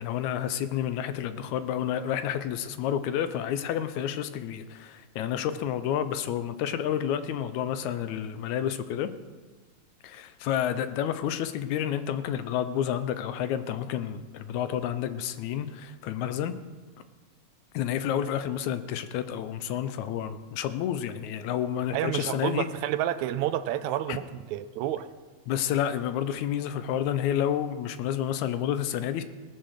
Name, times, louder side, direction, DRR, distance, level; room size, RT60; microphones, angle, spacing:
voice 1, 0.0-9.1 10.0-16.6 17.7-22.7 24.1-24.2 25.5-29.2, left 10 dB, 85° left, 11 dB, 2.0 m, -30 dB
voice 2, 21.9-24.2 24.5-25.1, right 12 dB, 80° right, 12 dB, 1.8 m, -29 dB
19.0 x 6.4 x 6.5 m, 1.3 s
omnidirectional pair, 3.4 m